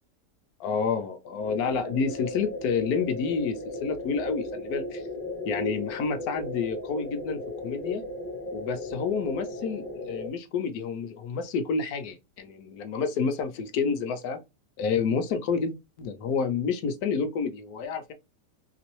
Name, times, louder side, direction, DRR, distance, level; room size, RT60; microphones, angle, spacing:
voice 1, 0.6-5.0 5.5-8.0 8.5-14.4 14.8-18.1, left 5 dB, 70° left, 1.0 m, -29 dB
sound 1, 1.4-10.3, left 2 dB, 35° left, 0.6 m, -36 dB
3.0 x 2.9 x 3.0 m
omnidirectional pair, 1.8 m